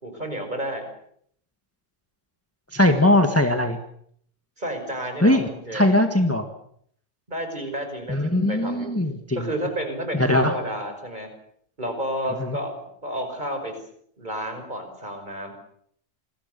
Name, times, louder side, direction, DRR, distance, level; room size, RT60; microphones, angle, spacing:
voice 1, 0.0-0.9 4.6-5.9 7.3-8.9 9.3-11.3 11.8-13.8 14.2-15.5, equal, 35° right, 5 dB, 5.9 m, -31 dB
voice 2, 2.7-3.8 5.2-6.5 8.1-9.5 10.1-10.6 12.4-12.6, left 1 dB, 10° left, 6 dB, 1.7 m, -20 dB
27.5 x 22.0 x 6.9 m, 0.67 s
omnidirectional pair, 1.3 m